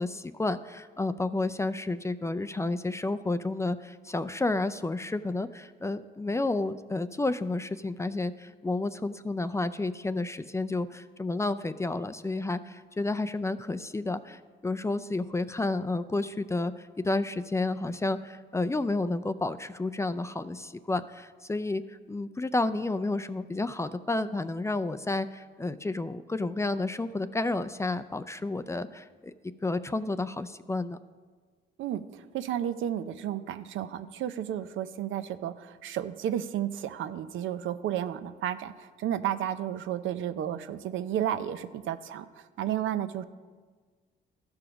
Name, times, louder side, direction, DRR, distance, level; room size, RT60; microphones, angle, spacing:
voice 1, 0.0-29.3 29.6-31.0, left 2 dB, 15° left, 12 dB, 0.4 m, -31 dB
voice 2, 31.8-42.3 42.6-43.2, right 10 dB, 80° right, 11 dB, 0.6 m, -32 dB
14.0 x 4.9 x 6.1 m, 1.5 s
cardioid pair, 90°, 20 cm